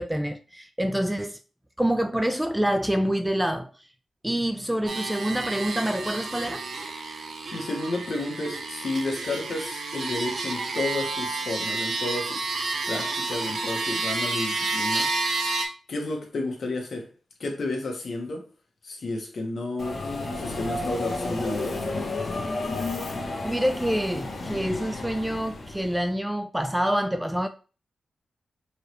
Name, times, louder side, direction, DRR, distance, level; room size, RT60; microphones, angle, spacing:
voice 1, 0.0-1.4 1.8-3.7 4.2-6.7 23.4-27.5, equal, 5° right, 0.3 m, -26 dB
sound 1, 4.9-15.7, right 3 dB, 60° right, 0.8 m, -30 dB
voice 2, 7.5-12.4 12.9-15.1 15.9-17.1 17.4-18.5 18.8-20.0 20.3-22.1, left 2 dB, 60° left, 1.2 m, -31 dB
Subway metro underground, 19.8-26.0, left 2 dB, 45° left, 0.9 m, -32 dB
4.5 x 3.1 x 3.2 m
wide cardioid pair, 120°, 0 cm